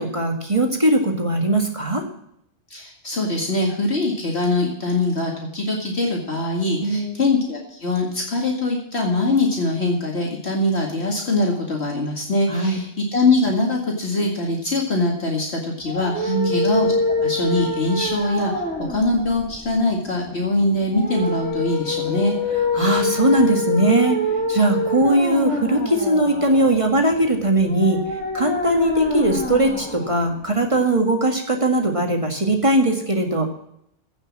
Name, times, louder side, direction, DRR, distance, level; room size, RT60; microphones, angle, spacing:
voice 1, 0.0-2.0 6.8-7.2 12.5-12.8 16.3-16.5 22.7-24.2 24.5-33.5, right 1 dB, 25° right, 3 dB, 1.9 m, -20 dB
voice 2, 2.7-18.5 18.9-22.3, left 2 dB, 60° left, 0 dB, 2.4 m, -22 dB
sound 1, 15.8-30.8, left 2 dB, 5° left, 2.8 m, -26 dB
16.0 x 6.2 x 7.4 m, 0.75 s
omnidirectional pair, 1.2 m